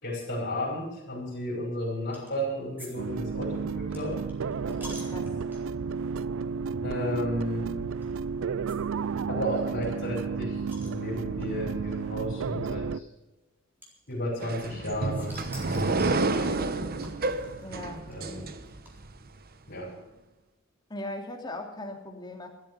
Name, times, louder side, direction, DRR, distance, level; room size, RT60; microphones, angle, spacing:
voice 1, 0.0-4.2 6.8-7.7 9.3-13.0 14.1-17.0 18.1-18.5 19.7-19.9, equal, 50° left, -3 dB, 5.4 m, -33 dB
sound 1, 2.1-2.4 2.8-2.9 3.2-5.9 6.5-6.6 6.9-7.0 8.0-8.2 8.7-8.8 9.0-9.1 9.3-9.4 9.8-11.5 12.4-12.5 13.8-14.8 15.1-16.3 17.0-19.3, equal, 10° right, 4.2 m, -48 dB
sound 2, 3.0-13.0, right 5 dB, 65° right, 0.4 m, -32 dB
voice 2, 4.7-5.4 17.6-18.1 20.9-22.5, left 1 dB, 20° left, 3 dB, 2.6 m, -39 dB
sound 3, 14.4-19.1, right 3 dB, 45° right, 1.0 m, -29 dB
13.5 x 13.0 x 6.9 m, 1.0 s
head